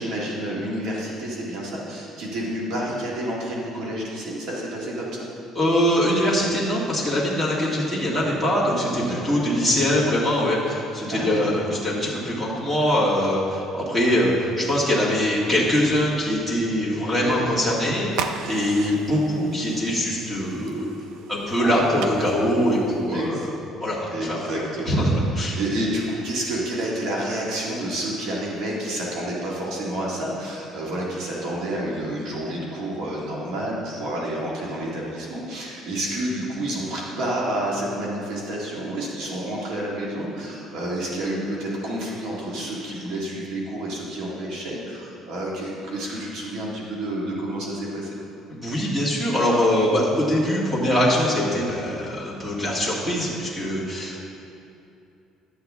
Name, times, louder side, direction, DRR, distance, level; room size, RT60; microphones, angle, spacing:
voice 1, 0.0-5.1 9.0-9.4 11.1-11.5 17.1-17.6 21.6-21.8 23.1-23.5 24.1-24.9 25.5-48.1, right 1 dB, 70° right, -4 dB, 1.9 m, -29 dB
voice 2, 5.5-20.9 21.3-23.4 23.8-24.5 24.9-25.6 48.5-54.2, equal, 15° right, -5 dB, 2.1 m, -23 dB
sound 1, 18.1-23.3, right 6 dB, 85° right, 0.5 m, -37 dB
11.0 x 7.9 x 3.6 m, 2.7 s
cardioid pair, 150°, 0 cm